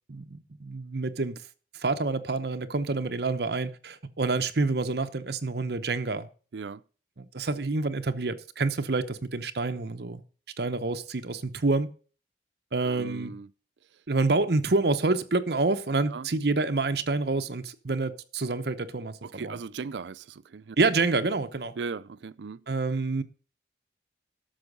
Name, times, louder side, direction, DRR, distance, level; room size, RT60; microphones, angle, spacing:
voice 1, 0.1-1.4 1.8-6.3 7.2-10.2 10.6-11.9 12.7-13.3 14.1-19.6 20.8-21.7 22.7-23.2, right 3 dB, 65° right, 0.8 m, -27 dB
voice 2, 12.8-13.5 16.1-16.3 19.2-20.8 21.8-22.6, right 4 dB, 85° right, 0.5 m, -38 dB
13.0 x 6.2 x 5.3 m
head